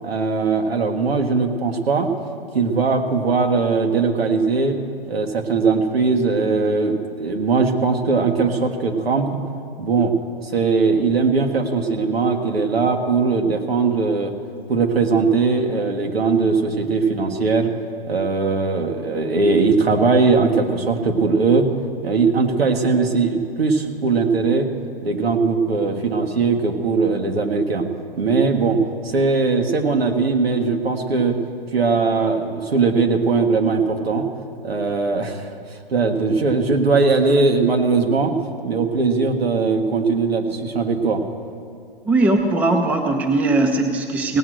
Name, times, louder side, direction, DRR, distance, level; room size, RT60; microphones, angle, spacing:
voice 1, 0.0-2.1 2.5-4.8 5.1-9.4 9.8-10.1 10.4-14.3 14.7-17.7 18.1-21.7 22.0-24.7 25.0-27.8 28.2-28.8 29.0-31.4 31.7-34.3 34.6-35.5 35.9-38.3 38.6-41.2, right 4 dB, 85° right, 3 dB, 1.7 m, -20 dB
voice 2, 42.1-44.4, right 2 dB, 5° right, 5 dB, 0.5 m, -19 dB
17.5 x 7.7 x 6.4 m, 2.4 s
hypercardioid pair, 140°, 30 cm